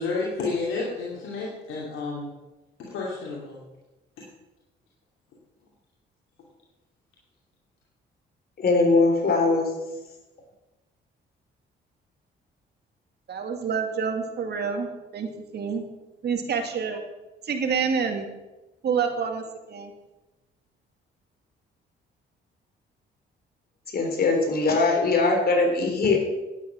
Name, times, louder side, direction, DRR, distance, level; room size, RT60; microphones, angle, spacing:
voice 1, 0.0-2.3 2.8-3.6 4.2-4.3, left 3 dB, 85° left, -4 dB, 2.8 m, -31 dB
voice 2, 8.6-9.7 23.9-26.2, left 3 dB, 50° left, 3 dB, 3.7 m, -21 dB
voice 3, 13.3-15.8 16.2-17.0 17.4-18.3 18.8-19.9, right 6 dB, 55° right, 5 dB, 2.2 m, -28 dB
11.0 x 9.2 x 6.3 m, 1.0 s
cardioid pair, 90°, 20 cm